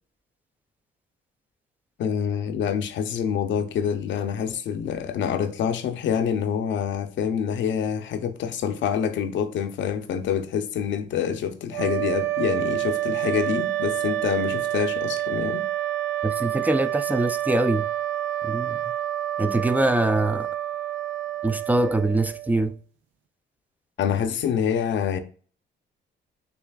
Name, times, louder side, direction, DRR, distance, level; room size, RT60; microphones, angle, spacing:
voice 1, 2.0-15.6 24.0-25.2, left 8 dB, 70° left, 0.7 m, -26 dB
sound 1, 11.7-22.6, right 13 dB, 75° right, 0.7 m, -28 dB
voice 2, 16.2-17.9 18.4-18.8 19.4-20.5 21.4-22.7, right 2 dB, 10° right, 0.3 m, -23 dB
6.8 x 2.4 x 2.4 m
cardioid pair, 90°, 20 cm